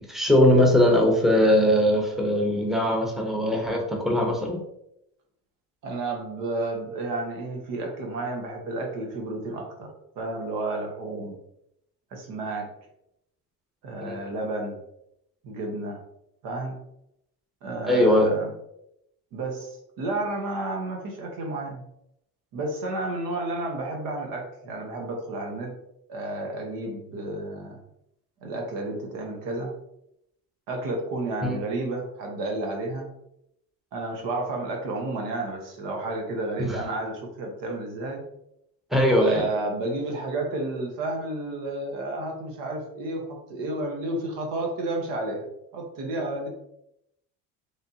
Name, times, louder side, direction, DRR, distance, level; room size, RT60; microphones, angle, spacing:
voice 1, 0.1-4.6 14.0-14.2 17.8-18.3 31.4-31.6 36.6-36.8 38.9-39.5, left 1 dB, ahead, 0 dB, 0.8 m, -20 dB
voice 2, 5.8-9.9 10.2-11.3 12.1-12.7 13.8-14.8 15.4-16.0 16.4-16.8 17.6-18.5 19.3-21.8 22.5-25.7 26.1-27.8 28.4-29.7 30.7-33.1 33.9-38.2 39.1-45.5 45.7-46.5, right 2 dB, 80° right, 2 dB, 1.2 m, -31 dB
4.0 x 3.5 x 2.8 m, 0.79 s
cardioid pair, 120°, 32 cm